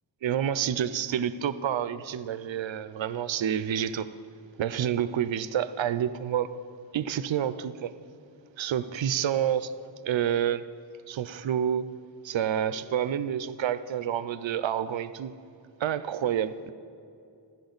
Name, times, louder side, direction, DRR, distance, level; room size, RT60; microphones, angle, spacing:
voice 1, 0.2-4.1 4.6-6.5 6.9-7.9 8.6-9.7 10.1-10.6 11.1-11.9 12.2-15.3 15.8-16.7, right 9 dB, 85° right, 0.5 m, -28 dB
14.5 x 10.5 x 3.9 m
cardioid pair, 45°, 45 cm